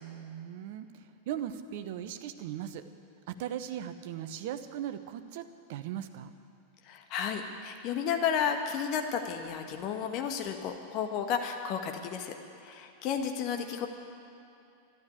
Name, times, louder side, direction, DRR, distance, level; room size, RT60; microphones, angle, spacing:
voice 1, 0.0-2.8 3.3-6.3, right 10 dB, 50° right, 10 dB, 0.9 m, -38 dB
voice 2, 6.9-12.4 12.6-13.9, left 7 dB, 40° left, 5 dB, 1.4 m, -32 dB
12.5 x 12.0 x 8.9 m, 2.7 s
figure-of-eight pair, 90°, 0 cm